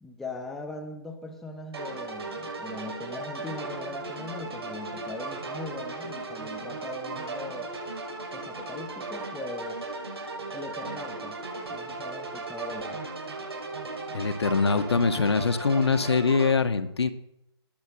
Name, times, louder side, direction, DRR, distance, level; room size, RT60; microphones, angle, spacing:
voice 1, 0.0-7.7 8.3-9.8 10.5-11.4 11.7-13.0, left 2 dB, ahead, 4 dB, 0.7 m, -40 dB
sound 1, 1.7-16.5, right 3 dB, 65° right, 6.8 m, -36 dB
voice 2, 14.1-17.1, left 4 dB, 70° left, 9 dB, 1.7 m, -23 dB
19.5 x 8.2 x 7.8 m, 0.84 s
hypercardioid pair, 160°, 14 cm